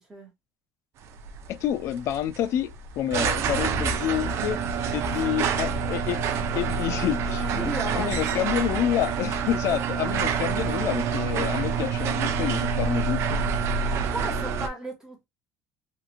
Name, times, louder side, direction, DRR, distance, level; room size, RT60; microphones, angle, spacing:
sound 1, 1.0-14.7, right 6 dB, 50° right, 0.4 m, -27 dB
voice 1, 1.5-6.2 6.6-7.7 7.9-13.4, left 11 dB, 50° left, 0.3 m, -28 dB
voice 2, 7.6-8.2 14.0-15.3, right 1 dB, 10° right, 1.1 m, -35 dB
2.9 x 2.5 x 2.4 m
cardioid pair, 155°, 6 cm